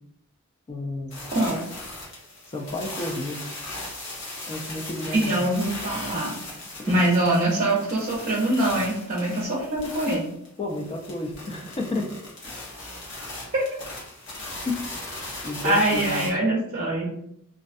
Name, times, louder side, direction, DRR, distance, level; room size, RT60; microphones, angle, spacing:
voice 1, 0.7-1.2 2.5-3.4 4.5-5.5 10.6-12.0 14.7-14.8 15.4-16.3, left 2 dB, 25° left, 1 dB, 0.4 m, -31 dB
sound 1, 1.1-16.3, left 2 dB, 60° left, 0.9 m, -38 dB
voice 2, 1.3-1.6 5.1-6.3 6.9-10.3 13.5-13.6 15.6-17.1, right 1 dB, 40° right, -5 dB, 0.6 m, -23 dB
2.4 x 2.2 x 2.5 m, 0.73 s
head